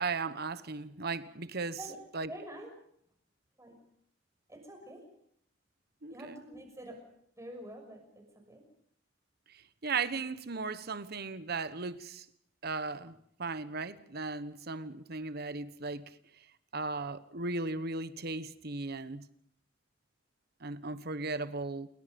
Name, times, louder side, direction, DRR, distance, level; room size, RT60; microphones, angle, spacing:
voice 1, 0.0-1.8 2.1-2.3 6.0-6.4 9.8-12.2 12.6-16.1 16.7-19.3 20.6-21.9, right 4 dB, 55° right, 1.2 m, -36 dB
voice 2, 2.3-2.7 3.6-3.8 4.5-5.0 6.1-7.0 7.4-8.6, right 1 dB, 15° right, 6.4 m, -47 dB
28.5 x 22.0 x 5.3 m
head